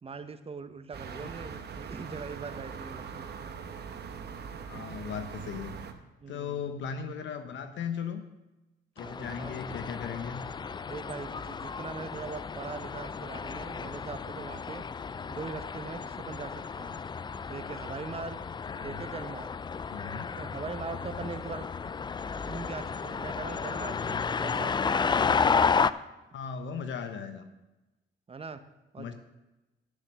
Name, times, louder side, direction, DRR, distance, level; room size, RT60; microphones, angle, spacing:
voice 1, 0.0-3.5 6.2-6.7 9.0-9.6 10.9-14.8 15.3-17.0 17.5-18.4 18.8-19.5 20.4-21.8 22.4-26.0 28.3-28.6 28.9-29.1, right 4 dB, 30° right, 11 dB, 0.9 m, -41 dB
sound 1, 0.9-5.9, right 6 dB, 55° right, 1.0 m, -41 dB
voice 2, 1.2-1.6 4.6-5.7 6.3-8.2 9.0-10.4 18.7-19.0 19.9-20.3 26.3-27.4 29.0-29.1, left 7 dB, 70° left, 8 dB, 0.9 m, -37 dB
sound 2, 9.0-25.9, left 5 dB, 25° left, 0.3 m, -32 dB
9.9 x 6.6 x 6.5 m, 1.0 s
cardioid pair, 90°, 20 cm